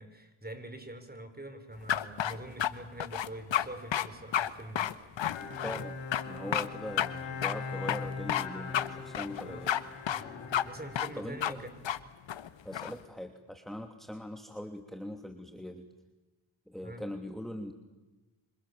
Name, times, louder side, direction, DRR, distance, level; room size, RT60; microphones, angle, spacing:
voice 1, 0.0-4.9 9.4-9.7 10.1-10.3 10.6-11.7 16.8-17.0, right 1 dB, 20° right, 9 dB, 5.8 m, -44 dB
sound 1, 1.9-2.7 3.0-3.7 3.9-4.1 4.3-4.5 4.8-5.8 6.1-6.2 6.5-6.7 7.0-7.1 7.4-7.5 7.9-8.5 8.7-8.9 9.1-9.8 10.1-10.2 10.5-10.6 11.0-11.1 11.4-11.5 11.8-12.0 12.3-12.9, left 10 dB, 65° left, 1.4 m, -30 dB
Bowed string instrument, 5.3-12.0, left 5 dB, 90° left, 5.1 m, -41 dB
voice 2, 5.6-6.0 6.2-9.7 11.1-11.6 12.6-15.9 16.7-17.7, left 1 dB, ahead, 5 dB, 2.8 m, -41 dB
26.5 x 26.5 x 7.4 m, 1.2 s
supercardioid pair, 50°, 48 cm